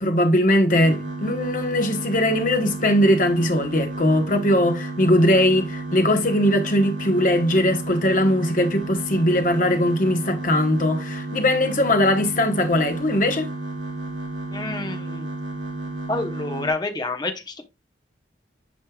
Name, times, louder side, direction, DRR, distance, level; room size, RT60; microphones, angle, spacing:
voice 1, 0.0-13.5, left 1 dB, 45° left, 1.1 m, -20 dB
sound 1, 0.7-16.7, right 2 dB, 90° right, 3.0 m, -32 dB
voice 2, 14.5-15.3 16.1-17.6, left 2 dB, 20° left, 1.0 m, -28 dB
8.9 x 5.4 x 2.3 m
head